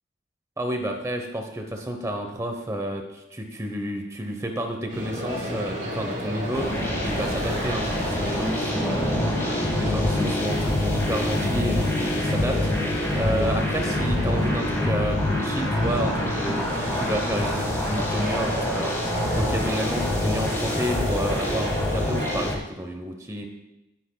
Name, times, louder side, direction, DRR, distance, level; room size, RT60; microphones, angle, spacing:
voice 1, 0.6-9.0 9.7-12.6 13.2-16.7 16.9-18.9 19.4-23.5, equal, 15° right, 4 dB, 0.9 m, -30 dB
sound 1, 4.9-22.4, equal, 40° right, 4.6 m, -32 dB
sound 2, 6.5-22.5, left 1 dB, 15° left, 1.6 m, -26 dB
21.0 x 10.0 x 2.3 m, 0.93 s
head